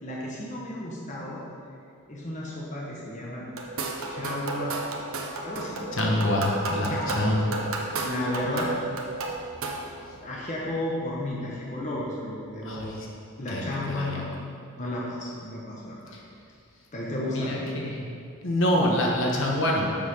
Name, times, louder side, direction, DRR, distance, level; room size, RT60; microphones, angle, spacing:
voice 1, 0.0-1.4 2.1-3.5 4.1-4.9 5.4-5.9 6.9-7.5 8.0-8.7 10.1-13.1 13.4-14.4 14.8-16.0 16.9-17.6, left 1 dB, 35° left, -5 dB, 1.0 m, -33 dB
Westfalen Kolleg Luis Grove, 3.6-10.0, right 2 dB, 80° right, 0.8 m, -33 dB
voice 2, 6.0-7.7 12.6-13.1 13.5-14.0 17.3-17.6 17.9-18.1 18.4-20.0, left 1 dB, 65° left, -2 dB, 1.2 m, -26 dB
7.0 x 5.7 x 5.5 m, 2.4 s
head